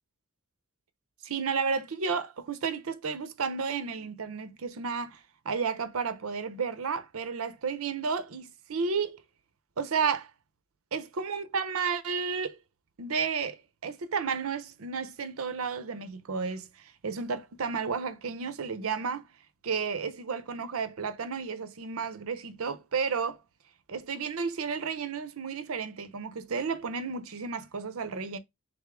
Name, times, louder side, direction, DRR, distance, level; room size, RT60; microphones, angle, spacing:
voice 1, 1.2-9.2 9.8-10.3 10.9-12.6 13.0-19.3 19.6-23.4 23.9-28.4, right 5 dB, 70° right, 0.6 m, -32 dB
3.7 x 3.5 x 3.5 m
head